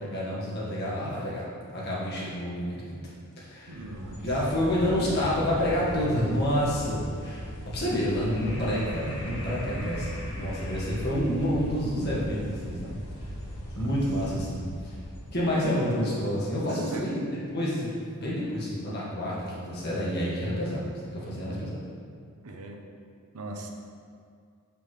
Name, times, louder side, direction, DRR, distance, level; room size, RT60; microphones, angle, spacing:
voice 1, 0.0-3.0 3.4-3.9 4.2-13.0 13.8-15.0 15.3-21.8, equal, 45° left, -7 dB, 1.5 m, -29 dB
sound 1, 3.6-15.6, equal, 80° left, 1.4 m, -38 dB
voice 2, 3.7-4.2 9.7-9.9 13.7-13.9 16.9-17.0 22.4-22.8 23.3-23.7, right 2 dB, 85° right, 2 dB, 0.7 m, -40 dB
6.5 x 5.2 x 3.2 m, 2.2 s
head